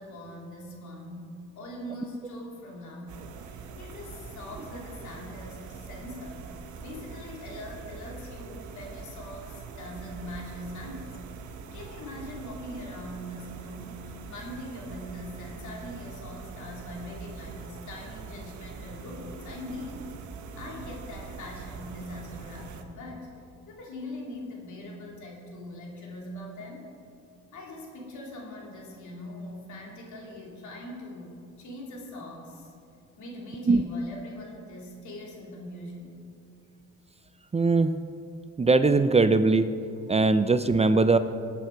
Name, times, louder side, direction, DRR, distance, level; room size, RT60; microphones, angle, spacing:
voice 1, 0.0-6.5 6.8-20.1 20.6-23.3 23.7-26.9 27.5-32.7 33.2-36.1, left 1 dB, 75° left, -1 dB, 3.2 m, -42 dB
sound 1, 3.1-22.8, right 5 dB, 75° right, 1.2 m, -43 dB
voice 2, 37.5-37.9 38.6-39.7 40.1-41.2, right 3 dB, 20° right, 11 dB, 0.5 m, -20 dB
18.5 x 8.8 x 4.7 m, 2.4 s
cardioid pair, 90°, 30 cm